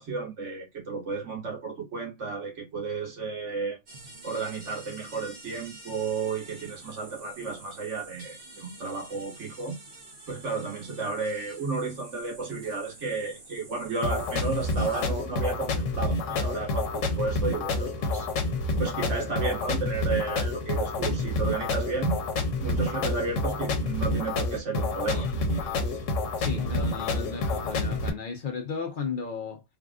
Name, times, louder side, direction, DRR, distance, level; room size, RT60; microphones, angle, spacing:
voice 1, 0.0-3.8 4.2-9.8 10.3-18.3 18.8-22.2 22.6-25.3, right 4 dB, 70° right, 1.9 m, -32 dB
sound 1, 3.9-15.1, right 2 dB, 45° right, 1.2 m, -48 dB
sound 2, 14.0-28.1, left 2 dB, 90° left, 1.1 m, -28 dB
voice 2, 26.4-29.6, left 5 dB, 50° left, 0.8 m, -34 dB
3.5 x 2.5 x 2.3 m
omnidirectional pair, 1.3 m